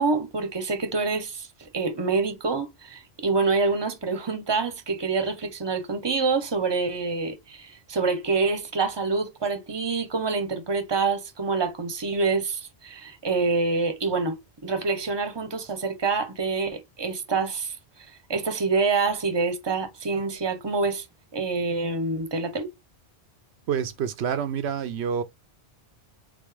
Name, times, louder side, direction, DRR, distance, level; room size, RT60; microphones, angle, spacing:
voice 1, 0.0-14.4 14.6-17.8 18.3-21.0 21.3-22.7, right 4 dB, 25° right, 0.8 m, -26 dB
voice 2, 23.7-25.2, right 7 dB, 90° right, 0.9 m, -27 dB
3.7 x 3.7 x 3.3 m
omnidirectional pair, 1.1 m